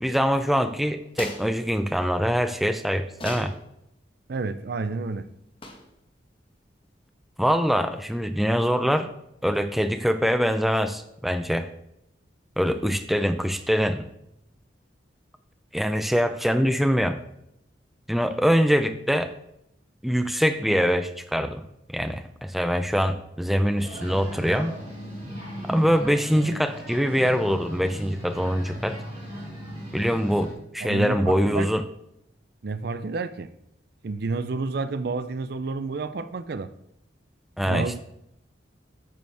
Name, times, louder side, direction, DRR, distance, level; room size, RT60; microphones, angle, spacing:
voice 1, 0.0-3.5 7.4-9.1 9.4-11.7 12.6-14.0 15.7-17.2 18.1-19.3 20.0-21.6 21.9-24.7 25.6-29.0 29.9-31.8 37.6-38.0, equal, ahead, 9 dB, 0.4 m, -24 dB
sound 1, 1.1-1.5 3.1-3.6 5.6-6.0, left 2 dB, 30° left, 1.2 m, -37 dB
voice 2, 4.3-5.3 30.8-31.7 32.6-33.5 34.0-36.7 37.6-38.0, right 3 dB, 60° right, 13 dB, 0.5 m, -30 dB
sound 2, 23.8-30.5, equal, 30° right, 3.8 m, -37 dB
9.2 x 7.9 x 3.4 m, 0.80 s
head